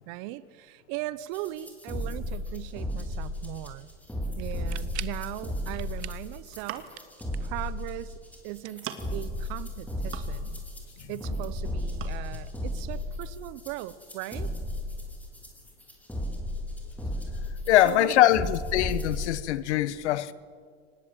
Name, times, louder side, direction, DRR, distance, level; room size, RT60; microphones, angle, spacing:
voice 1, 0.1-3.9 4.4-6.9 7.4-8.2 8.4-10.6 11.1-14.5 17.8-18.5, right 16 dB, 55° right, 0.9 m, -38 dB
sound 1, 1.3-19.3, left 1 dB, 5° left, 4.6 m, -34 dB
sound 2, 4.5-5.3 5.7-6.3 6.6-7.6 8.5-9.5, right 15 dB, 85° right, 1.0 m, -43 dB
sound 3, 6.3-7.1 8.1-8.3 8.6-9.3 9.7-10.6 10.9-11.6 11.9-12.1, right 9 dB, 40° right, 2.5 m, -42 dB
voice 2, 17.7-20.3, left 13 dB, 85° left, 1.3 m, -23 dB
24.5 x 19.5 x 9.1 m
supercardioid pair, 115°, 33 cm